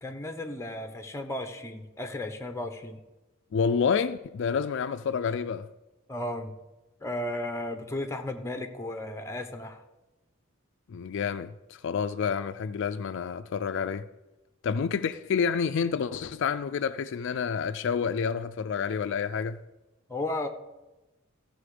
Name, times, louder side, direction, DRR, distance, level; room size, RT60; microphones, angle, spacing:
voice 1, 0.0-3.0 6.1-6.5 7.0-9.8 20.1-20.5, left 1 dB, 15° left, 0.9 m, -34 dB
voice 2, 3.5-5.7 10.9-14.1 14.6-19.6, left 6 dB, 60° left, 0.4 m, -29 dB
14.0 x 6.8 x 4.9 m
head